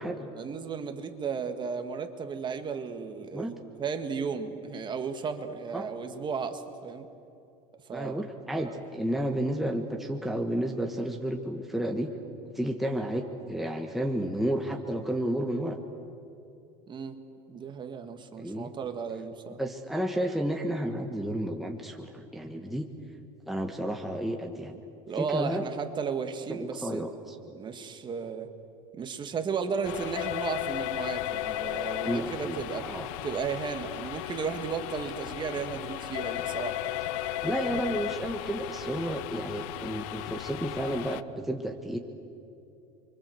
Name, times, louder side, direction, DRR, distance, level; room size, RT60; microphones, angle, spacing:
voice 1, 0.4-7.1 7.9-8.2 8.6-8.8 16.9-17.2 17.5-19.6 25.1-27.0 27.5-28.5 29.0-32.9 33.2-36.8, right 6 dB, 25° right, 7 dB, 1.9 m, -34 dB
voice 2, 7.9-12.1 12.5-15.8 18.4-18.7 19.6-22.9 23.5-24.8 25.2-25.7 26.5-27.4 32.0-33.1 37.4-42.0, right 1 dB, ahead, 2 dB, 1.4 m, -31 dB
sound 1, 29.8-41.2, left 14 dB, 75° left, 0.8 m, -35 dB
30.0 x 24.5 x 8.0 m, 2.7 s
cardioid pair, 145°, 17 cm